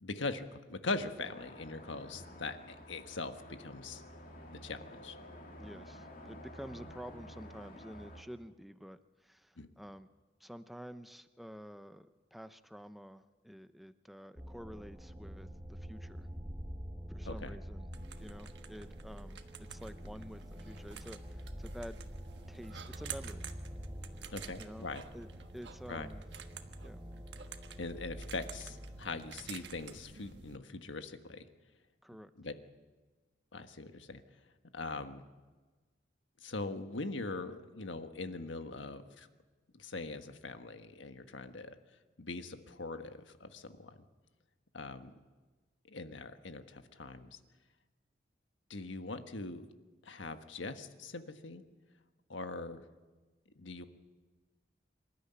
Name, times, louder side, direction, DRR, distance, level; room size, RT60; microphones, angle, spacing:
voice 1, 0.0-4.0 4.5-5.2 9.6-9.7 17.3-17.6 24.3-25.0 25.9-26.1 27.8-31.4 32.4-32.5 33.5-34.2 34.7-35.2 36.4-39.3 39.7-41.7 42.2-44.0 44.7-45.1 45.9-47.4 48.7-49.6 50.0-51.6 52.3-52.8 53.5-53.8, left 3 dB, 90° left, 8 dB, 1.5 m, -41 dB
sound 1, 1.2-8.2, equal, 45° left, 2.9 m, -51 dB
voice 2, 5.6-10.1 10.4-16.3 17.1-17.9 18.2-22.0 22.5-23.5 24.6-24.9 25.1-26.2 26.8-27.0 32.0-32.3, equal, ahead, 10 dB, 0.7 m, -49 dB
sound 2, 14.4-29.9, equal, 15° right, 1.4 m, -47 dB
sound 3, 17.9-30.6, right 6 dB, 70° right, 1.4 m, -50 dB
26.0 x 13.0 x 9.8 m, 1.3 s
head